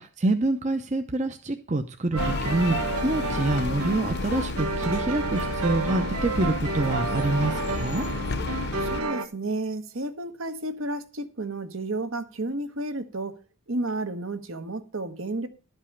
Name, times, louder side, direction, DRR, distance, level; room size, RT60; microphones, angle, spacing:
voice 1, 0.0-8.1, right 2 dB, 30° right, 0.7 m, -26 dB
sound 1, 2.1-9.0, left 3 dB, 50° left, 0.7 m, -32 dB
sound 2, 2.1-9.3, right 3 dB, 85° right, 1.0 m, -31 dB
voice 2, 8.8-13.4 13.7-15.5, right 2 dB, 65° right, 1.3 m, -32 dB
12.0 x 5.4 x 7.1 m
head